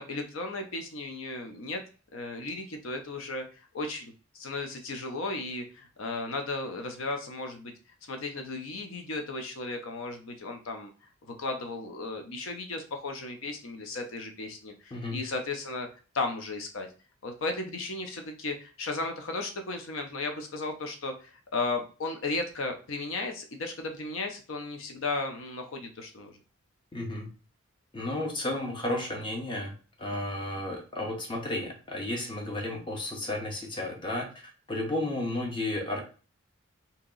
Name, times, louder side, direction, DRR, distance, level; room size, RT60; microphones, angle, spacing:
voice 1, 0.0-1.8 2.1-7.7 8.0-10.9 11.3-15.9 16.1-16.9 17.2-26.4, left 3 dB, 70° left, 5 dB, 0.6 m, -35 dB
voice 2, 26.9-27.3 27.9-36.0, left 1 dB, 25° left, 1 dB, 0.8 m, -33 dB
2.9 x 2.8 x 3.8 m, 0.35 s
head